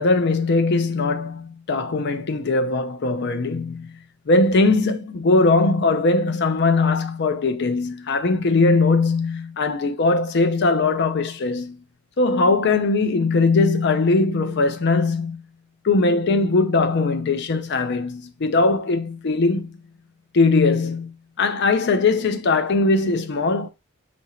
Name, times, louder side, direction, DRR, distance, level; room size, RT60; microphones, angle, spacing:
voice 1, 0.0-4.0 4.3-11.8 12.2-15.4 15.8-19.8 20.3-23.7, left 3 dB, 55° left, 0.5 m, -20 dB
2.8 x 2.6 x 4.3 m
head